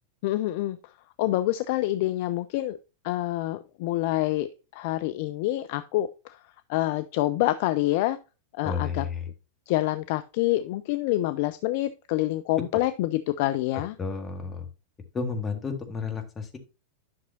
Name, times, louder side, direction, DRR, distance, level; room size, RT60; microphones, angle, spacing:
voice 1, 0.2-0.8 1.2-2.8 3.0-6.4 6.7-8.2 8.5-9.0 9.7-14.0, left 16 dB, 50° left, 12 dB, 0.4 m, -27 dB
voice 2, 8.6-9.2 14.0-14.7 15.1-16.6, left 5 dB, 15° left, 3 dB, 1.7 m, -31 dB
11.0 x 6.0 x 2.7 m, 0.31 s
figure-of-eight pair, 90°, 0 cm